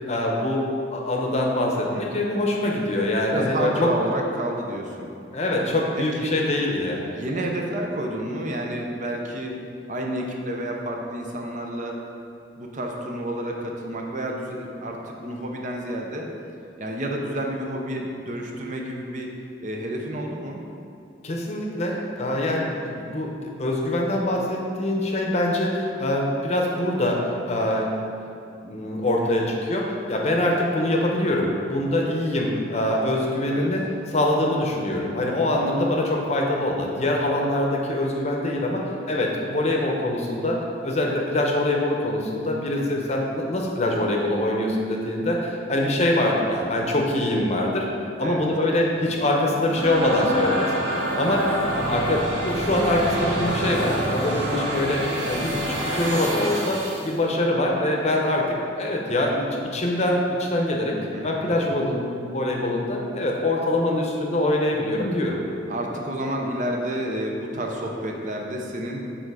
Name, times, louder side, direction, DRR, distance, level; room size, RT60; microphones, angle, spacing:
voice 1, 0.1-0.6 0.9-3.9 5.3-7.1 21.2-28.0 28.6-47.9 48.2-61.0 61.2-65.4, left 1 dB, 35° left, 0 dB, 0.7 m, -24 dB
voice 2, 3.3-5.1 6.0-6.3 7.1-9.5 9.9-12.0 12.6-16.3 16.8-19.3 19.6-20.6 29.0-29.4 33.4-33.7 35.6-35.7 42.7-43.1 48.2-48.4 49.1-49.2 55.2-55.6 61.1-61.3 61.6-61.7 65.7-69.0, right 1 dB, 40° right, 1 dB, 0.7 m, -30 dB
sound 1, 49.4-57.1, equal, 85° right, 1.1 m, -27 dB
6.9 x 3.8 x 4.8 m, 2.6 s
head